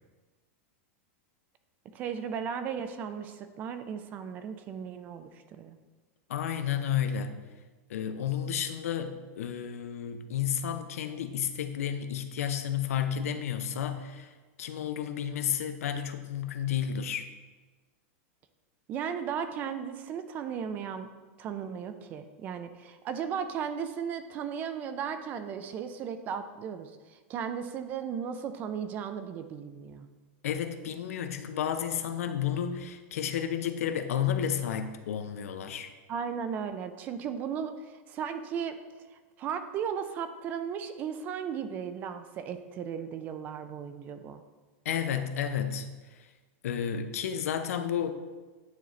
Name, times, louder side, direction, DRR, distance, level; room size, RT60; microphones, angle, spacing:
voice 1, 1.9-5.8 18.9-21.1 21.4-30.1 36.1-38.8 39.1-44.4, right 7 dB, 20° right, 10 dB, 0.3 m, -36 dB
voice 2, 6.3-7.3 7.9-14.3 14.6-17.3 30.4-35.9 44.8-45.9 46.6-48.1, left 9 dB, 90° left, 9 dB, 0.6 m, -31 dB
9.3 x 3.9 x 3.1 m, 1.3 s
supercardioid pair, 170°, 8 cm